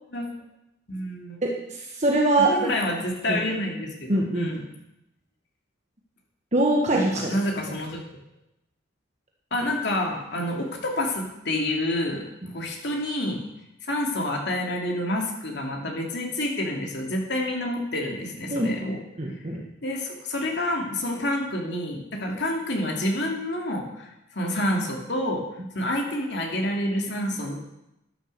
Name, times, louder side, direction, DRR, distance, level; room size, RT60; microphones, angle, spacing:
voice 1, 0.9-1.4 2.4-4.6 6.9-8.0 9.5-12.2 12.5-13.4 13.9-19.0 19.8-24.1 24.3-25.4 25.7-27.5, left 1 dB, 60° left, 1 dB, 2.8 m, -28 dB
voice 2, 1.4-2.7 3.3-3.4 4.1-4.5 6.5-7.3 18.5-18.9 19.2-19.6, right 2 dB, 35° right, -1 dB, 1.5 m, -23 dB
12.0 x 10.0 x 6.8 m, 0.89 s
head